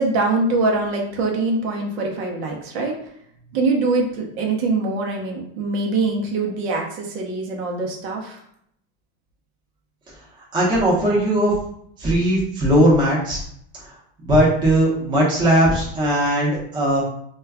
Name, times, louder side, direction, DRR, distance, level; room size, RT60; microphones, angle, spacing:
voice 1, 0.0-3.0 3.5-8.4, right 3 dB, 70° right, 0 dB, 0.7 m, -23 dB
voice 2, 10.5-11.5 12.0-13.4 14.2-17.0, right 1 dB, 15° right, -6 dB, 0.7 m, -18 dB
2.2 x 2.2 x 3.4 m, 0.69 s
supercardioid pair, 160°, 33 cm